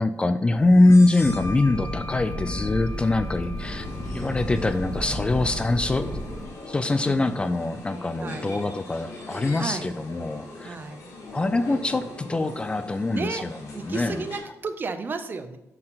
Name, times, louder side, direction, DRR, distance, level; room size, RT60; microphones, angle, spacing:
voice 1, 0.0-6.3 6.7-10.8 11.3-14.2, left 2 dB, 20° left, 10 dB, 0.3 m, -23 dB
sound 1, 0.8-8.1, left 2 dB, 65° left, 2.1 m, -44 dB
Fire, 1.2-6.5, equal, 5° left, 2.2 m, -33 dB
sound 2, 3.6-14.4, left 2 dB, 85° left, 2.4 m, -41 dB
voice 2, 8.2-8.5 9.6-9.9 10.6-11.1 13.1-13.5 13.7-15.6, right 4 dB, 35° right, 9 dB, 0.6 m, -33 dB
7.4 x 4.5 x 3.9 m, 0.93 s
cardioid pair, 135°, 6 cm